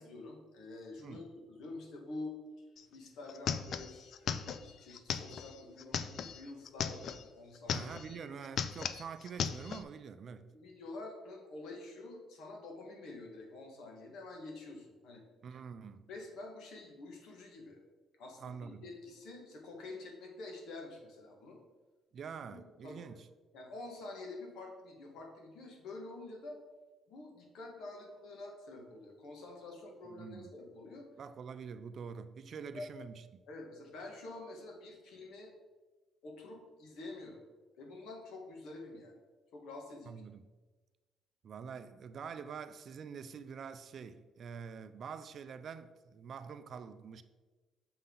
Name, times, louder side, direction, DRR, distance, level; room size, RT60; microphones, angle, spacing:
voice 1, 0.0-2.4 2.9-7.9 8.2-8.3 10.4-15.2 16.1-17.8 18.2-21.6 22.5-23.0 23.5-26.6 27.1-31.1 32.6-32.9 33.5-35.5 36.2-37.4 37.8-39.2 39.5-40.2, left 2 dB, 75° left, 1.5 m, -48 dB
sound 1, 2.8-2.9 3.1-7.2 7.6-8.2 8.4-9.8, left 7 dB, 55° left, 0.4 m, -37 dB
voice 2, 7.7-10.5 15.4-16.0 18.4-18.9 22.1-23.3 30.1-30.5 31.2-33.4 40.1-40.4 41.4-47.2, right 6 dB, 45° right, 0.4 m, -46 dB
6.8 x 5.7 x 3.8 m
cardioid pair, 130°, 0 cm